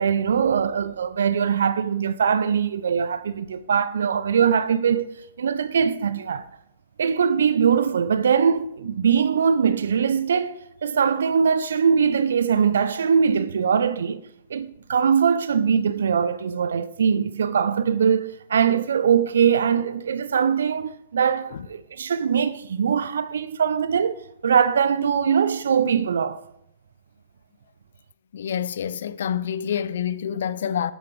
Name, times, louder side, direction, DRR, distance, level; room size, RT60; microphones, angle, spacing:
voice 1, 0.0-5.1 5.4-6.5 7.0-10.6 10.8-14.2 14.5-26.4, right 7 dB, 65° right, 0.4 m, -22 dB
voice 2, 28.3-30.9, left 8 dB, 60° left, 0.5 m, -27 dB
11.5 x 8.9 x 3.3 m
figure-of-eight pair, 110°, 0 cm